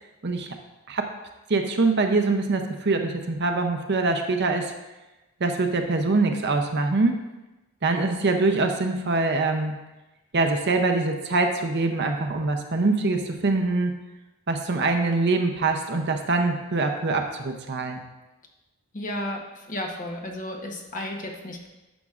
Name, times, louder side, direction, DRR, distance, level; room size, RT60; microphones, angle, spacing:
voice 1, 1.5-4.7 5.4-7.2 7.8-9.8 10.3-13.9 14.5-18.0, right 3 dB, 50° right, 5 dB, 0.6 m, -24 dB
voice 2, 18.9-21.7, left 1 dB, 35° left, 1 dB, 1.0 m, -33 dB
11.0 x 6.0 x 2.5 m, 1.1 s
head